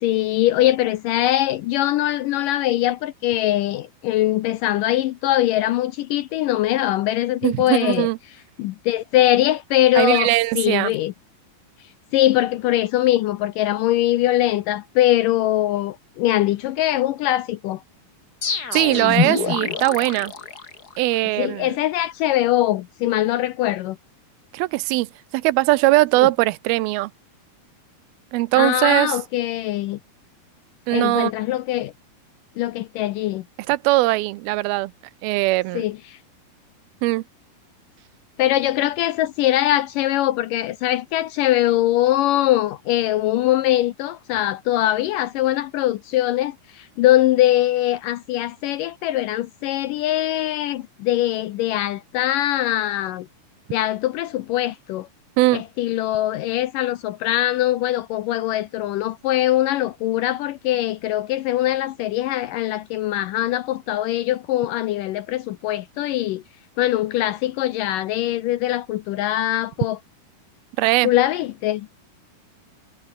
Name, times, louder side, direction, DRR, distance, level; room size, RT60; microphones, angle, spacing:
voice 1, 0.0-8.1 8.6-11.1 12.1-17.8 21.4-24.0 28.6-30.0 30.9-31.9 32.6-33.4 35.7-36.2 38.4-53.3 53.7-55.1 55.5-66.4 66.8-70.0 71.0-71.9, left 14 dB, 80° left, 2.0 m, -22 dB
voice 2, 7.4-8.2 10.0-10.9 18.7-20.3 21.0-21.8 24.5-27.1 28.3-29.2 30.9-31.3 33.7-34.9 35.2-35.9 37.0-37.2 55.4-55.6 70.8-71.1, right 19 dB, 80° right, 2.5 m, -20 dB
sound 1, 18.4-21.2, left 5 dB, 35° left, 1.9 m, -25 dB
omnidirectional pair, 4.5 m